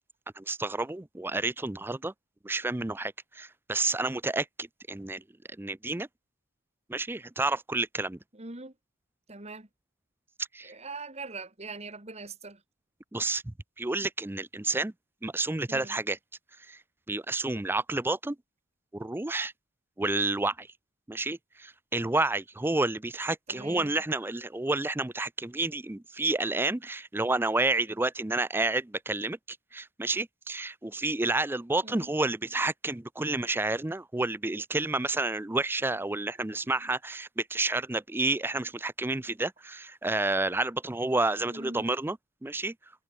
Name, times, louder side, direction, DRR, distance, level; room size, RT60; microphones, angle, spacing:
voice 1, 0.4-2.1 2.4-5.2 5.6-6.1 6.9-8.2 10.5-10.7 13.1-14.9 15.2-16.2 16.7-16.8 17.1-18.4 18.9-19.5 20.0-20.7 21.1-42.7, right 2 dB, 10° right, 0.5 m, -30 dB
voice 2, 8.3-8.7 9.3-9.7 10.6-12.6 15.7-16.0 23.5-24.0 31.8-32.1 41.5-41.9, right 3 dB, 30° right, 2.3 m, -42 dB
head